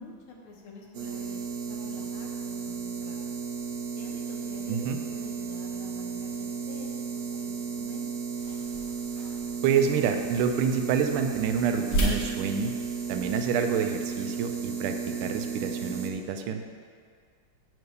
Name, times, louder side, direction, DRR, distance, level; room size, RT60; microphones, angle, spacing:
voice 1, 0.0-3.2 4.0-6.9 7.1-8.1, left 2 dB, 80° left, -1 dB, 1.9 m, -47 dB
sound 1, 0.9-16.1, right 6 dB, 65° right, 1.0 m, -34 dB
voice 2, 4.7-5.0 9.6-12.7 13.1-16.6, right 7 dB, 80° right, 6 dB, 1.4 m, -28 dB
sound 2, 8.4-13.7, right 1 dB, 50° left, 1.2 m, -35 dB
6.0 x 4.6 x 6.6 m, 2.1 s
omnidirectional pair, 2.4 m